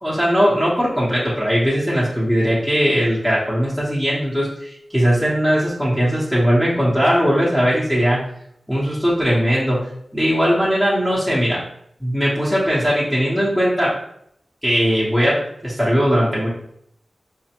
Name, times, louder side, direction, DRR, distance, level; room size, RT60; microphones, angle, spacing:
voice 1, 0.0-8.2 8.7-9.9 10.1-11.6 12.0-14.0 14.6-16.5, equal, ahead, -8 dB, 1.0 m, -19 dB
4.6 x 2.1 x 2.9 m, 0.72 s
wide cardioid pair, 70°, 0 cm